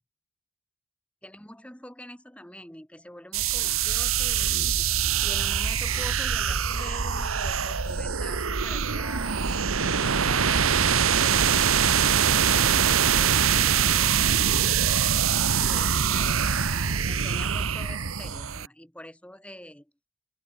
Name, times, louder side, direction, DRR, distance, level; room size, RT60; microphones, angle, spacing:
voice 1, 1.2-15.1 15.7-16.5 17.0-19.9, left 1 dB, 5° left, 2.8 m, -44 dB
sound 1, 3.3-18.7, right 7 dB, 80° right, 1.3 m, -24 dB
head